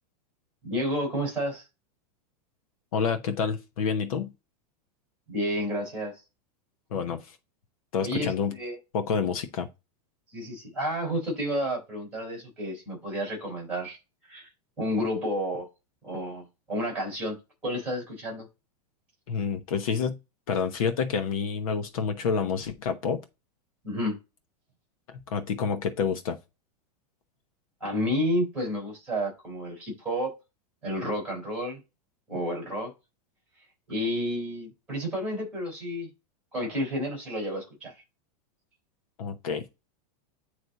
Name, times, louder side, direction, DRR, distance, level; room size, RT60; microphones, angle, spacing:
voice 1, 0.6-1.6 5.3-6.2 8.0-8.8 10.3-14.0 14.3-14.5 14.8-15.7 16.0-17.4 17.6-18.5 23.8-24.2 27.8-30.3 30.8-31.8 32.3-32.9 33.9-36.1 36.5-37.9, equal, 5° right, 4.4 m, -30 dB
voice 2, 2.9-4.3 6.9-7.4 7.9-8.5 8.9-9.7 19.3-20.2 20.5-23.2 25.1-26.4 39.2-39.7, left 6 dB, 60° left, 1.1 m, -28 dB
9.5 x 3.2 x 4.0 m
supercardioid pair, 180°, 20 cm